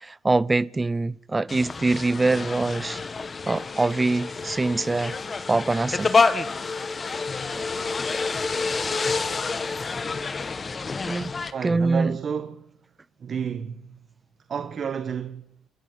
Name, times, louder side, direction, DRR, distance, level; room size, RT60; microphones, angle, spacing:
voice 1, 0.0-3.0 3.5-5.2 5.5-6.1 7.5-7.7 11.0-11.3 11.6-12.2, right 3 dB, 25° right, 0.8 m, -24 dB
sound 1, 1.5-11.5, left 4 dB, 35° left, 2.0 m, -28 dB
voice 2, 11.5-12.7 13.2-14.0 14.5-15.5, right 7 dB, 50° right, 1.3 m, -31 dB
28.5 x 13.5 x 8.5 m
hypercardioid pair, 55°, 0 cm